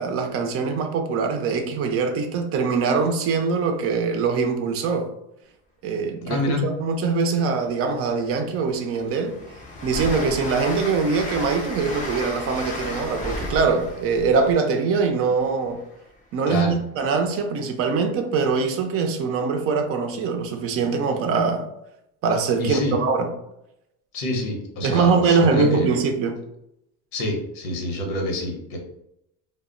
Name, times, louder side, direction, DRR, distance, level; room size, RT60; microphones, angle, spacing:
voice 1, 0.0-5.1 5.8-9.4 9.8-15.8 16.3-21.7 22.2-23.3 24.8-26.4, right 5 dB, 40° right, 0.4 m, -23 dB
voice 2, 6.2-6.7 16.5-16.8 22.6-23.0 24.1-25.9 27.1-28.8, left 1 dB, 85° left, 0.9 m, -27 dB
Train, 7.8-7.9 8.3-16.0, left 2 dB, 20° left, 0.5 m, -34 dB
2.1 x 2.0 x 3.7 m
supercardioid pair, 120°, 39 cm